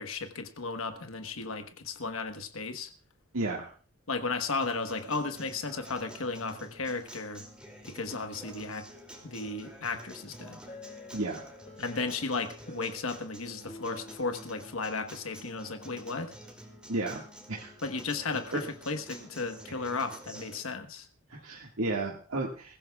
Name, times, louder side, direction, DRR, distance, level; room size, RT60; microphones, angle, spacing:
voice 1, 0.0-2.9 4.1-7.4 7.8-8.9 9.2-10.6 11.8-16.3 17.8-21.1, left 4 dB, 75° left, 7 dB, 1.2 m, -34 dB
voice 2, 3.3-3.7 11.1-11.5 16.9-17.2 17.5-17.7 18.5-18.6 21.3-22.8, right 2 dB, 90° right, -1 dB, 1.8 m, -32 dB
Acoustic guitar, 4.6-20.6, equal, 5° right, 2.6 m, -49 dB
sound 1, 10.7-15.4, left 2 dB, 30° left, 3.1 m, -51 dB
22.0 x 15.0 x 2.3 m, 0.40 s
head